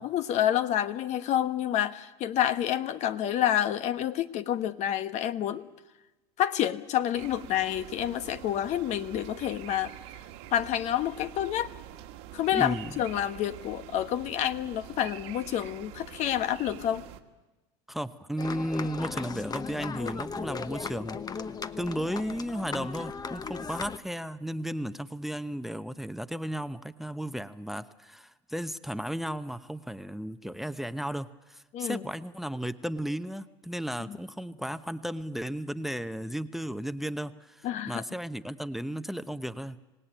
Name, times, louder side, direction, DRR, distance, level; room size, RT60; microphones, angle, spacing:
voice 1, 0.0-5.6 6.4-9.9 10.5-11.7 12.3-17.0 31.7-32.0 34.1-34.2 37.6-38.0, left 11 dB, 55° left, 11 dB, 1.2 m, -28 dB
sound 1, 7.1-17.2, right 12 dB, 75° right, 1.7 m, -45 dB
voice 2, 12.5-12.9 17.9-21.5 21.8-39.8, equal, ahead, 13 dB, 0.9 m, -34 dB
sound 2, 18.4-24.0, left 5 dB, 30° left, 1.1 m, -37 dB
26.0 x 18.0 x 9.0 m, 1.1 s
hypercardioid pair, 80°, 14 cm